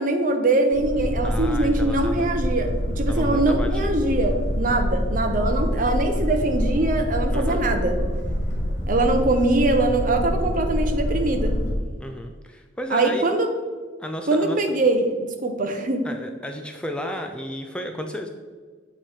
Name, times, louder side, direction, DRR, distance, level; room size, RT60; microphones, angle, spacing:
voice 1, 0.0-7.9 8.9-11.5 12.9-13.5 14.3-15.1 15.4-16.1, right 2 dB, 45° right, 5 dB, 0.7 m, -22 dB
Boat Water vehicle, 0.7-11.7, equal, 80° left, 1.7 m, -26 dB
voice 2, 1.2-2.3 3.1-4.0 7.3-7.7 12.0-13.3 14.0-14.7 16.0-18.3, equal, 5° left, 4 dB, 0.4 m, -33 dB
8.3 x 3.1 x 4.3 m, 1.5 s
head